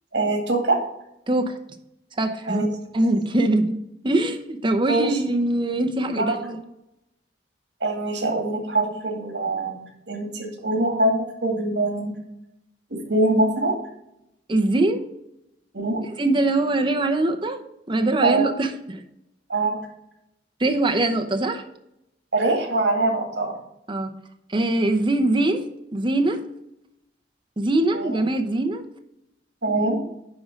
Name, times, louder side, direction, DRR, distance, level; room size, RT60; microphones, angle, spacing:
voice 1, 0.1-0.8 2.5-2.7 4.9-5.1 6.2-6.5 7.8-12.1 12.9-13.7 15.7-16.0 18.2-18.4 19.5-19.8 22.3-23.6 27.9-28.2 29.6-30.0, right 2 dB, 80° right, 3 dB, 2.1 m, -23 dB
voice 2, 1.3-1.6 2.2-2.6 2.9-3.7 4.0-6.6 14.5-15.1 16.1-17.6 17.9-19.0 20.6-21.6 23.9-24.1 24.5-26.4 27.6-28.8, right 2 dB, 30° right, 5 dB, 0.8 m, -22 dB
10.5 x 3.8 x 5.2 m, 0.83 s
head